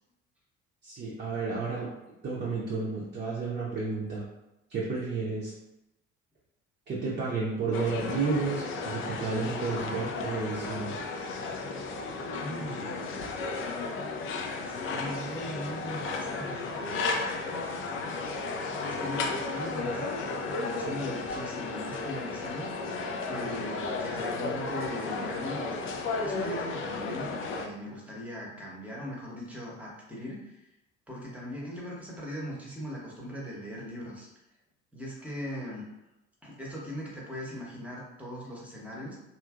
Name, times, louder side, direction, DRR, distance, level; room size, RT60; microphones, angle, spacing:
voice 1, 0.8-1.9 2.2-4.2 4.7-5.5 6.9-11.0, right 4 dB, 25° right, -6 dB, 0.7 m, -31 dB
sound 1, 7.7-27.7, left 3 dB, 35° left, 0.4 m, -34 dB
voice 2, 12.4-13.3 14.6-17.4 18.8-20.1 20.6-23.0 23.3-25.8 26.2-30.6 31.1-34.3 34.9-35.8 36.4-39.1, equal, 5° right, -4 dB, 1.0 m, -39 dB
2.8 x 2.4 x 2.4 m, 0.94 s
figure-of-eight pair, 50°, 37 cm